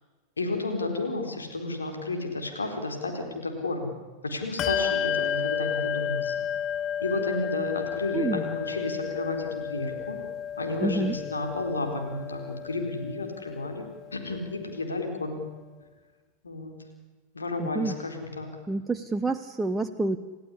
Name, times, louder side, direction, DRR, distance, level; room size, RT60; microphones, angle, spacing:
voice 1, 0.4-3.9 4.2-6.3 7.0-10.2 10.6-15.4 16.4-16.8 17.3-18.5, left 2 dB, 75° left, 4 dB, 4.2 m, -32 dB
Bell, 4.6-14.6, left 9 dB, 30° left, 0.8 m, -32 dB
voice 2, 10.8-11.1 17.6-18.0 18.7-20.2, right 3 dB, 10° right, 6 dB, 1.0 m, -28 dB
29.0 x 15.5 x 10.0 m, 1.3 s
figure-of-eight pair, 90°, 0 cm